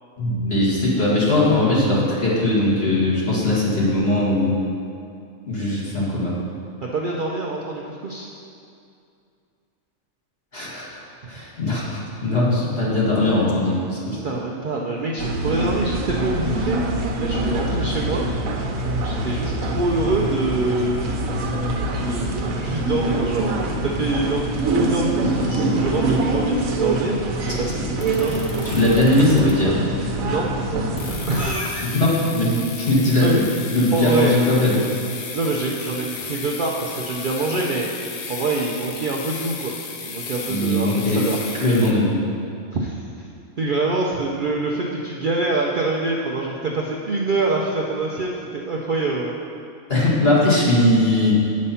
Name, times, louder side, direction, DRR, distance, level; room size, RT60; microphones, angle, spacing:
voice 1, 0.2-4.6 5.5-6.3 10.5-10.9 11.3-14.2 27.5-27.6 28.6-29.7 31.8-34.8 40.5-41.2 41.6-42.2 49.9-51.5, left 1 dB, 45° left, -7 dB, 2.0 m, -19 dB
voice 2, 6.8-8.3 14.2-16.8 17.2-18.2 19.0-21.0 22.0-23.6 23.8-28.5 30.2-30.5 31.3-31.9 33.2-33.4 33.9-34.4 35.3-37.9 38.3-39.7 40.0-41.4 42.7-43.0 43.6-49.3, right 3 dB, 50° right, -2 dB, 0.6 m, -25 dB
sound 1, 15.2-31.6, right 2 dB, 85° right, 1.2 m, -24 dB
sound 2, 28.0-29.8 31.0-41.9, left 5 dB, 80° left, 1.2 m, -35 dB
8.5 x 5.2 x 5.6 m, 2.5 s
omnidirectional pair, 1.4 m